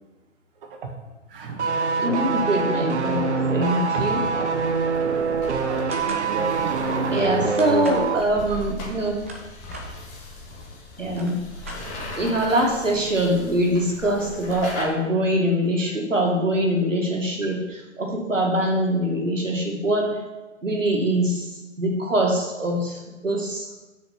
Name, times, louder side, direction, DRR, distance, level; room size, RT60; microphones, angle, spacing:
voice 1, 1.3-1.6 3.9-4.5 5.7-7.1 15.8-16.0, right 4 dB, 45° right, 3 dB, 1.6 m, -34 dB
sound 1, 1.6-8.3 8.5-8.7, right 4 dB, 60° right, 1.0 m, -24 dB
voice 2, 2.0-4.2 7.1-9.1 11.0-11.4 12.2-20.2 20.6-21.5 21.8-23.7, right 1 dB, 80° right, 0 dB, 2.1 m, -23 dB
sound 2, 4.5-14.8, left 1 dB, 20° left, 1.6 m, -39 dB
sound 3, 5.9-6.3 7.6-8.1 9.0-9.9 10.7-10.8 11.0-12.2, right 1 dB, 10° right, 0.4 m, -39 dB
6.6 x 5.6 x 6.0 m, 1.1 s
figure-of-eight pair, 125°, 38 cm